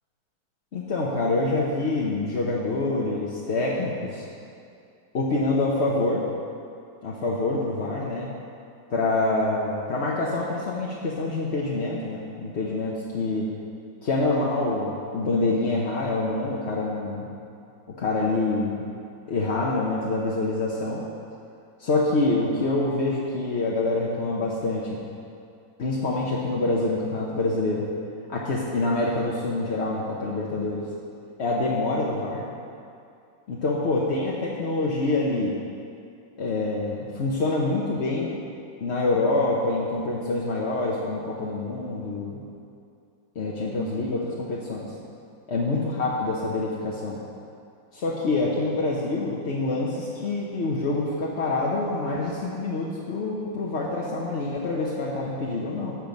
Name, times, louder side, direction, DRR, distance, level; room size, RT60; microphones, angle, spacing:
voice 1, 0.7-4.2 5.1-6.3 7.0-8.3 8.9-13.5 14.0-17.3 18.0-18.9 19.3-21.0 21.8-25.0 25.8-27.9 28.3-30.8 31.4-32.4 33.5-35.5 36.4-38.4 38.8-42.4 43.3-44.9 45.5-47.2 47.9-56.0, left 2 dB, 45° left, -4 dB, 1.0 m, -26 dB
14.0 x 6.2 x 5.3 m, 2.5 s
omnidirectional pair, 2.2 m